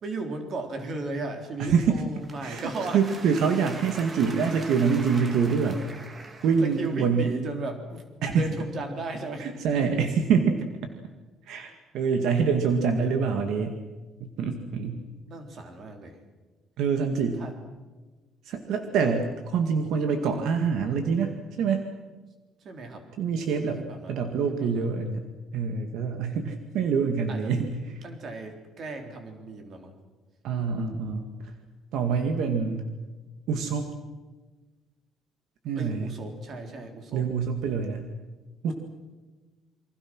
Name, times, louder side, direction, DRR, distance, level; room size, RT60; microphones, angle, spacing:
voice 1, 0.0-3.0 3.7-3.8 6.6-8.0 8.3-9.5 15.1-16.2 17.4-17.5 22.6-23.1 23.4-24.8 27.3-27.5 27.9-29.9 35.8-37.3 38.6-38.7, right 2 dB, 35° right, 5 dB, 3.9 m, -36 dB
voice 2, 1.6-2.0 2.4-5.8 6.4-7.3 8.2-8.5 9.4-10.6 11.5-13.8 14.2-15.0 16.8-17.4 18.5-21.8 23.2-23.8 24.1-25.2 25.5-27.7 30.4-31.3 31.9-32.9 33.5-33.9 35.6-36.2 37.1-38.1 38.6-38.7, right 6 dB, 65° right, 6 dB, 2.1 m, -25 dB
sound 1, 2.2-7.1, right 2 dB, 20° right, 1.9 m, -43 dB
28.5 x 24.5 x 6.3 m, 1.2 s
cardioid pair, 175°, 0 cm